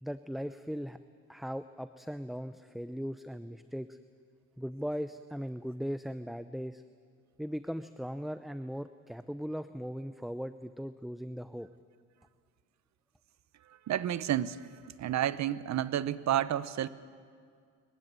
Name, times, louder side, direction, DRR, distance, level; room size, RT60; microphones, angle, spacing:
voice 1, 0.0-1.0 1.3-4.0 4.6-6.8 7.4-11.7, equal, ahead, 11 dB, 0.6 m, -38 dB
voice 2, 13.9-14.7 15.0-16.9, right 11 dB, 65° right, 16 dB, 0.9 m, -30 dB
25.5 x 15.5 x 9.6 m, 2.1 s
cardioid pair, 90°, 30 cm